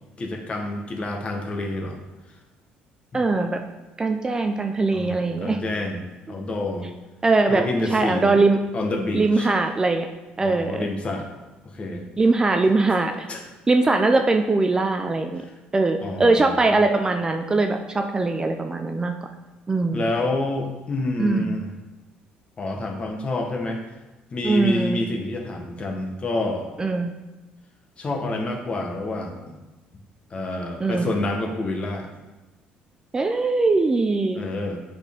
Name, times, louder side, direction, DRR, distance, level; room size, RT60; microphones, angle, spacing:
voice 1, 0.2-2.0 3.1-3.2 4.9-6.0 6.3-6.9 7.5-8.4 8.7-9.5 10.4-11.3 11.6-12.1 13.3-13.5 15.4-15.5 16.0-16.7 19.9-21.7 22.6-23.8 24.3-26.7 28.0-29.6 30.3-32.1 34.3-34.8, left 2 dB, 30° left, 3 dB, 1.0 m, -28 dB
voice 2, 3.1-3.6 4.0-5.6 7.2-7.6 7.9-8.6 9.1-10.1 10.4-10.9 12.2-13.3 13.7-15.4 15.7-19.1 19.7-20.1 21.2-21.6 24.4-25.0 26.8-27.1 30.8-31.1 33.1-34.5, right 3 dB, 20° right, 5 dB, 0.4 m, -21 dB
8.0 x 4.2 x 3.6 m, 1.1 s
cardioid pair, 110°, 4 cm